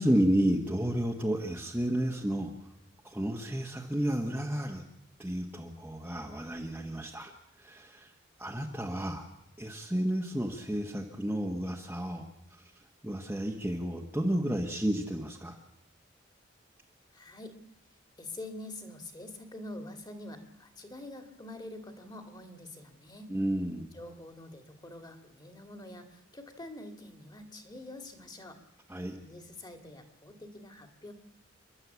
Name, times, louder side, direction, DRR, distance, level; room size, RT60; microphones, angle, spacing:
voice 1, 0.0-2.5 3.0-4.8 5.2-7.3 7.6-8.1 8.4-9.2 9.6-12.2 12.5-12.6 13.0-15.6 23.3-23.9 28.9-29.2, right 1 dB, 10° right, -1 dB, 1.4 m, -31 dB
voice 2, 17.1-17.6 18.2-23.3 23.9-28.6 29.2-31.1, left 1 dB, 20° left, 6 dB, 2.5 m, -46 dB
29.0 x 11.5 x 8.3 m, 0.87 s
head